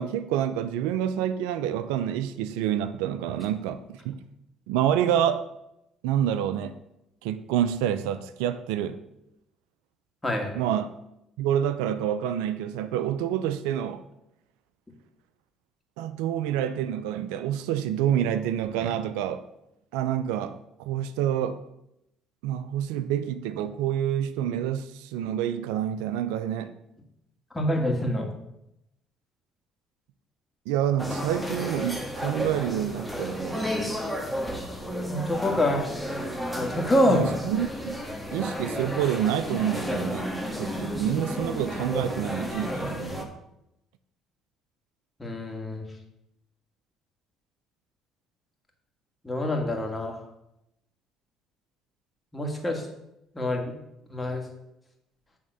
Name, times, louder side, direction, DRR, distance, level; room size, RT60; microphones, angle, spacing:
voice 1, 0.0-4.2 4.7-5.5 6.0-6.8 7.2-9.0 10.5-10.9 11.4-14.0 16.0-19.4 19.9-21.6 22.4-26.7 30.7-33.7 37.1-38.0 38.3-40.3 40.6-43.3, right 10 dB, 85° right, 0.5 m, -28 dB
voice 2, 27.5-28.3 35.1-35.9 36.5-37.2 45.2-45.9 49.2-50.2 52.3-52.9 53.3-53.7 54.1-54.4, left 1 dB, 15° left, 2.1 m, -26 dB
sound 1, 31.0-43.2, equal, ahead, 1.6 m, -32 dB
8.6 x 3.7 x 6.8 m
supercardioid pair, 70°, 0 cm